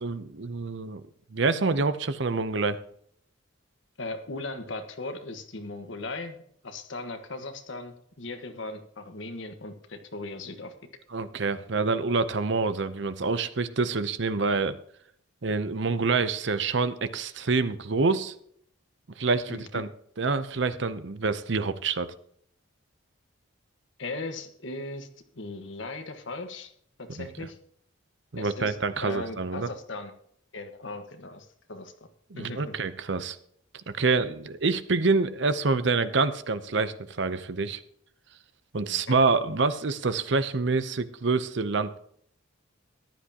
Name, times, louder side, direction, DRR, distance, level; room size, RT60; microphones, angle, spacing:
voice 1, 0.0-1.0 1.3-2.8 11.1-14.8 15.4-18.3 19.2-19.9 20.2-22.1 27.2-27.3 28.3-29.7 32.3-33.4 33.9-37.8 38.7-42.0, right 4 dB, 60° right, 13 dB, 0.7 m, -27 dB
voice 2, 4.0-10.7 19.5-19.8 24.0-25.1 25.3-26.7 27.0-27.6 28.4-28.8 29.0-30.1 30.5-31.9 32.4-32.8 38.9-39.1, left 2 dB, 65° left, 6 dB, 1.4 m, -38 dB
14.5 x 11.0 x 2.9 m, 0.66 s
head